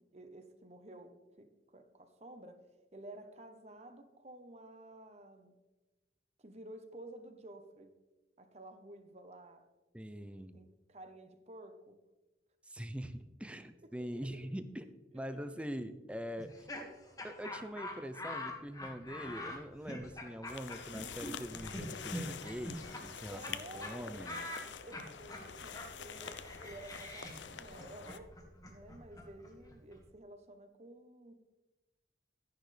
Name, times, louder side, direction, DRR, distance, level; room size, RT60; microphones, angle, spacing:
voice 1, 0.0-2.7 2.9-5.6 6.4-7.9 8.4-9.7 10.5-12.0 13.8-13.9 14.1-14.3 15.1-15.5 23.3-28.3 28.7-31.3, right 1 dB, 35° right, 1.0 m, -52 dB
voice 2, 9.9-10.6 12.6-14.9 15.1-16.7 17.2-23.4 23.7-24.4, equal, 5° right, 0.5 m, -43 dB
Laughter, 16.4-23.5 23.8-23.9 24.2-30.0, left 1 dB, 20° left, 1.5 m, -45 dB
sound 1, 20.4-28.2, left 7 dB, 90° left, 0.6 m, -47 dB
11.5 x 10.5 x 3.4 m
head